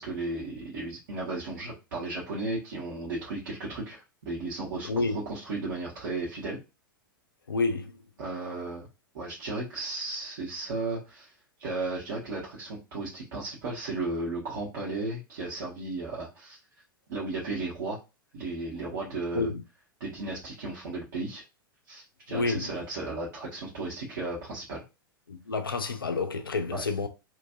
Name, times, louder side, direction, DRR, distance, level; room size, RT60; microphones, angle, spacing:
voice 1, 0.0-6.6 8.2-8.9 9.1-11.3 11.6-16.6 17.1-18.0 18.3-19.5 20.0-21.4 21.9-24.8 26.7-26.8, right 3 dB, 55° right, 1.2 m, -35 dB
voice 2, 4.8-5.2 7.5-7.9 19.3-19.6 22.3-22.7 25.3-27.1, left 3 dB, 75° left, 0.5 m, -29 dB
3.0 x 2.5 x 2.4 m
figure-of-eight pair, 90°, 12 cm